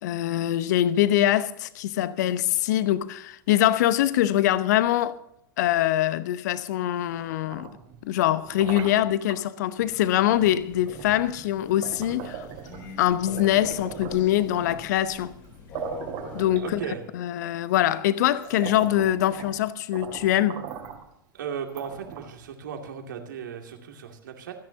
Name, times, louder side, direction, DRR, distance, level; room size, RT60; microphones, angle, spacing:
voice 1, 0.0-5.2 5.6-7.7 8.0-12.5 13.0-15.3 16.3-16.8 17.1-20.6, left 13 dB, 55° left, 0.8 m, -23 dB
sound 1, 7.3-9.4 10.3-10.5 10.9-12.9 13.3-14.9 15.4-15.5 15.7-17.2 17.9-18.0 18.3-19.6 19.9-21.1 21.7-22.5, right 8 dB, 45° right, 2.6 m, -39 dB
Crow, 9.8-16.5, left 4 dB, 35° left, 4.1 m, -45 dB
voice 2, 16.6-17.0 21.3-24.5, right 7 dB, 65° right, 2.4 m, -36 dB
27.0 x 10.5 x 2.8 m
figure-of-eight pair, 95°, 11 cm